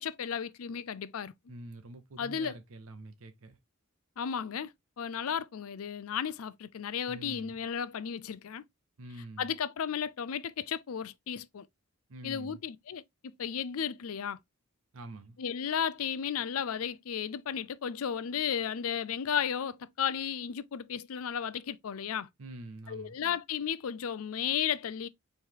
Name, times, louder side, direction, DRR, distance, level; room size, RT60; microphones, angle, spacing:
voice 1, 0.0-1.3 2.2-2.6 4.2-8.6 9.4-11.7 12.2-14.4 15.4-22.3 22.9-25.1, left 8 dB, 80° left, 0.5 m, -34 dB
voice 2, 1.5-3.6 7.1-7.5 9.0-9.5 12.1-12.6 14.9-15.4 22.4-23.2, right 2 dB, 70° right, 0.6 m, -46 dB
4.5 x 3.2 x 3.7 m
head